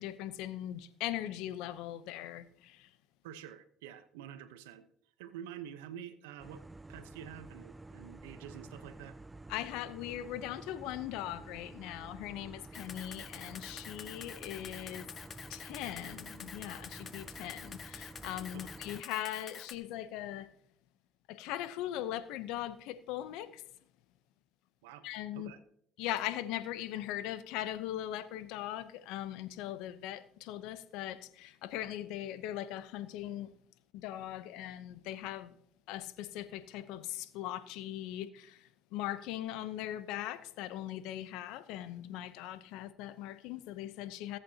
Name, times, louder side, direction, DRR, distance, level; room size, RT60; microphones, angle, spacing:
voice 1, 0.0-2.9 9.5-15.1 15.5-20.5 21.3-23.6 25.0-25.5 26.0-33.5 33.9-35.6 35.9-44.4, left 13 dB, 75° left, 0.8 m, -40 dB
voice 2, 3.2-4.9 5.2-6.6 6.9-9.2 18.5-18.7 24.8-25.1 25.3-25.6, right 9 dB, 90° right, 0.9 m, -48 dB
sound 1, 6.4-19.0, right 2 dB, 15° right, 0.4 m, -50 dB
Camera, 12.7-19.8, left 6 dB, 45° left, 1.0 m, -48 dB
21.5 x 8.4 x 2.9 m
supercardioid pair, 75°, 0 cm